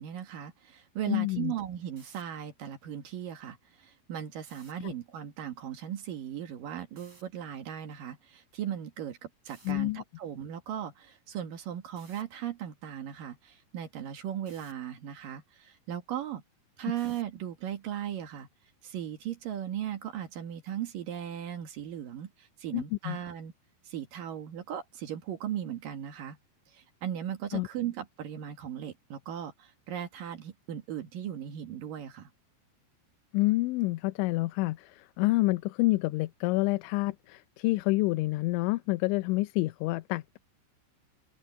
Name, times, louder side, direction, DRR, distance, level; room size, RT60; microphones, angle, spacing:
voice 1, 0.0-9.2 9.4-16.4 16.8-18.5 18.8-23.5 23.8-26.4 26.7-32.3, right 10 dB, 60° right, 2.8 m, -37 dB
voice 2, 1.1-1.5 4.8-4.9 9.7-10.0 22.7-23.2 27.5-27.7 33.3-40.4, left 20 dB, 85° left, 3.1 m, -28 dB
sound 1, 1.8-2.2 4.4-4.7 7.0-7.2 9.5-9.7 12.0-12.2 14.5-14.7 17.0-17.3, right 3 dB, 35° right, 9.1 m, -57 dB
open air
omnidirectional pair, 5.3 m